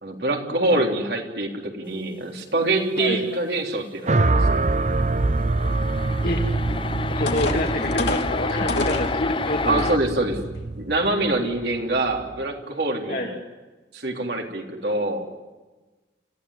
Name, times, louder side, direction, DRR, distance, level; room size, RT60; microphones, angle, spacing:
voice 1, 0.0-4.6 9.6-10.4 10.8-13.3 13.9-15.3, right 2 dB, 65° right, 2 dB, 3.5 m, -25 dB
voice 2, 3.0-3.4 6.2-6.4 7.1-9.8 13.1-13.4, left 1 dB, 55° left, 0 dB, 2.3 m, -27 dB
sound 1, 4.0-12.3, right 2 dB, 40° right, 0.7 m, -25 dB
sound 2, 5.2-10.0, left 3 dB, 30° left, 0.7 m, -29 dB
sound 3, 6.7-6.8 7.3-9.1 9.8-9.9 10.4-10.6, left 3 dB, 80° left, 2.6 m, -28 dB
27.5 x 15.5 x 9.8 m, 1.2 s
head